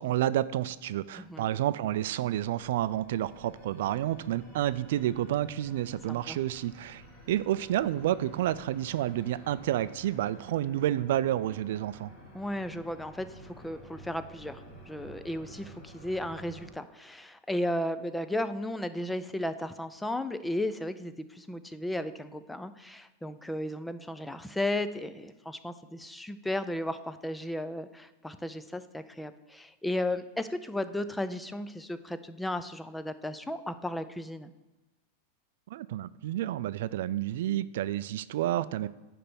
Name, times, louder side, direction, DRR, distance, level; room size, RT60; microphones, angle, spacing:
voice 1, 0.0-12.1 35.7-38.9, right 13 dB, 70° right, 15 dB, 0.3 m, -30 dB
sound 1, 1.1-16.7, equal, 30° left, 2.8 m, -51 dB
voice 2, 12.3-34.5, left 1 dB, 5° left, 11 dB, 0.4 m, -34 dB
10.0 x 3.4 x 6.9 m, 1.1 s
supercardioid pair, 155°, 0 cm